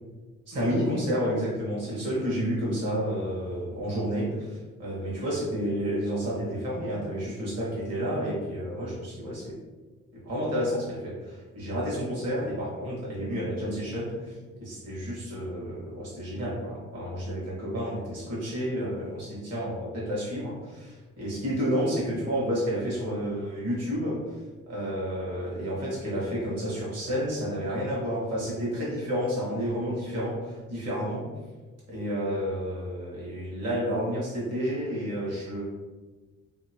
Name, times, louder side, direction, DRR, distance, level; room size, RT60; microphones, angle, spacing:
voice 1, 0.5-9.5 10.1-24.2 24.7-31.3 31.9-35.6, equal, 55° right, -6 dB, 1.3 m, -30 dB
2.8 x 2.6 x 2.7 m, 1.3 s
cardioid pair, 90°, 30 cm